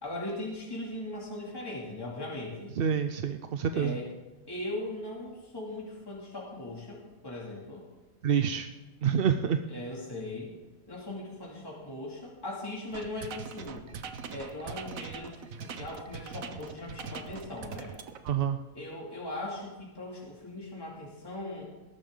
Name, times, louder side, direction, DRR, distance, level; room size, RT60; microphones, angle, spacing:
voice 1, 0.0-2.7 3.7-4.1 4.5-7.9 9.7-10.5 10.9-13.8 14.3-17.9 18.7-21.7, left 1 dB, 15° left, -4 dB, 2.7 m, -39 dB
voice 2, 2.8-4.0 8.2-8.7 9.0-9.6 18.2-18.6, right 7 dB, 55° right, 8 dB, 0.7 m, -27 dB
sound 1, 12.9-18.3, right 6 dB, 85° right, 1.4 m, -42 dB
20.5 x 12.0 x 3.8 m, 1.1 s
omnidirectional pair, 1.4 m